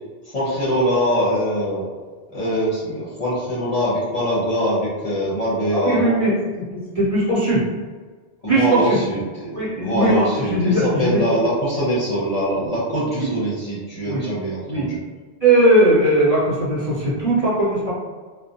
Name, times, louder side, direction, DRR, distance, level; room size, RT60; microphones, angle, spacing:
voice 1, 0.2-1.9 2.3-6.2 8.4-15.0, equal, 40° left, -9 dB, 0.8 m, -23 dB
voice 2, 5.7-6.3 6.7-7.6 8.5-9.0 9.5-11.2 13.2-13.3 14.1-14.2 14.7-14.9 15.4-17.9, right 1 dB, 35° right, -10 dB, 0.9 m, -19 dB
2.4 x 2.1 x 2.7 m, 1.4 s
omnidirectional pair, 1.1 m